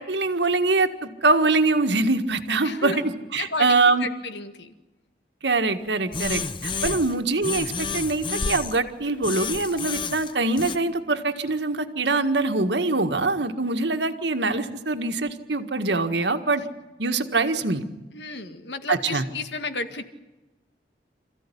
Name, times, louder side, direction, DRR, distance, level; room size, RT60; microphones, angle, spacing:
voice 1, 0.0-4.1 5.4-16.6 17.0-17.9 18.9-19.2, right 3 dB, 85° right, 7 dB, 1.7 m, -23 dB
voice 2, 2.6-3.0 3.4-4.7 6.7-7.0 18.1-20.0, left 3 dB, 80° left, 8 dB, 2.0 m, -33 dB
sound 1, 6.1-7.2 7.4-8.8 9.2-10.8, left 5 dB, 30° left, 0.9 m, -30 dB
27.5 x 15.5 x 10.0 m, 1.1 s
head